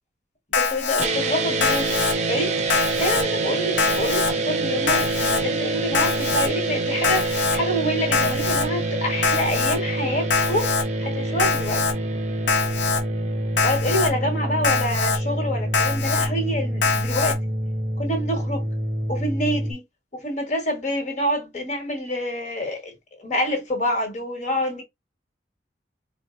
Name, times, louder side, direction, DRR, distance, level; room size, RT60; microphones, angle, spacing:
Alarm, 0.5-1.1 1.6-2.1 2.7-3.2 3.8-4.3 4.9-5.4 5.9-6.5 7.0-7.6 8.1-8.7 9.2-9.8 10.3-10.8 11.4-11.9 12.5-13.0 13.6-14.1 14.6-15.2 15.7-16.3 16.8-17.3, left 5 dB, 75° left, 0.5 m, -23 dB
voice 1, 0.5-1.9 2.3-2.5 3.0-10.7 11.0-11.8 13.6-17.4 18.0-18.7 19.1-19.8 20.1-24.8, equal, 45° left, 1.2 m, -27 dB
sound 1, 1.0-19.7, right 2 dB, 40° right, 0.5 m, -26 dB
3.8 x 2.1 x 2.4 m
head